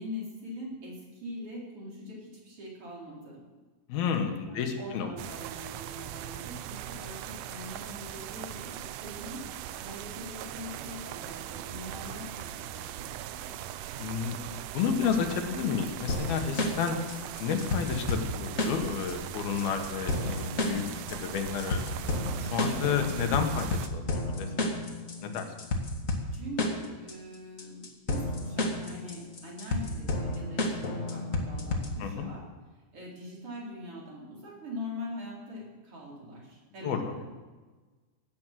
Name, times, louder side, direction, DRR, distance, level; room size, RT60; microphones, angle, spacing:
voice 1, 0.0-3.4 4.5-9.4 9.8-13.1 13.4-13.6 26.3-32.4 32.9-37.3, left 1 dB, 35° right, -4 dB, 5.0 m, -42 dB
voice 2, 3.9-5.1 14.0-16.9 17.4-20.8 21.1-24.5 25.2-25.5 32.0-32.3 36.8-37.2, left 7 dB, 80° left, 5 dB, 3.3 m, -31 dB
sound 1, 5.2-23.9, right 12 dB, 80° right, 1.9 m, -40 dB
sound 2, 16.1-32.1, left 2 dB, 45° left, 1.0 m, -32 dB
17.0 x 10.5 x 7.6 m, 1.3 s
omnidirectional pair, 4.3 m